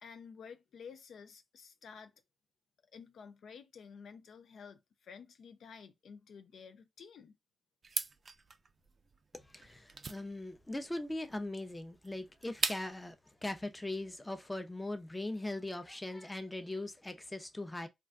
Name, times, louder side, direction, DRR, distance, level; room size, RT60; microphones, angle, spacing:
voice 1, 0.0-2.1 2.9-7.4, left 6 dB, 80° left, 0.3 m, -52 dB
sound 1, 7.8-13.1, right 4 dB, 50° right, 0.3 m, -40 dB
voice 2, 9.4-17.9, left 2 dB, 15° left, 0.6 m, -40 dB
2.4 x 2.2 x 3.5 m
cardioid pair, 65°, 0 cm